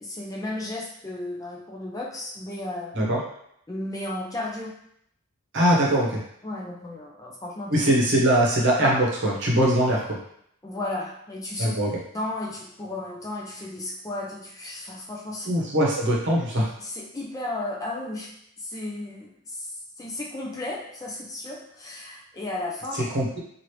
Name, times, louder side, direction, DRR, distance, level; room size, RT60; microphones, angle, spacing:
voice 1, 0.0-3.0 3.7-4.7 6.4-7.8 8.8-9.0 10.6-11.7 12.1-15.5 16.8-18.3 18.6-23.0, left 2 dB, 15° left, -3 dB, 0.4 m, -34 dB
voice 2, 5.5-6.2 7.7-10.0 11.6-11.9 15.5-16.7 23.1-23.4, right 1 dB, 55° right, -3 dB, 0.9 m, -21 dB
3.0 x 2.5 x 3.1 m, 0.71 s
head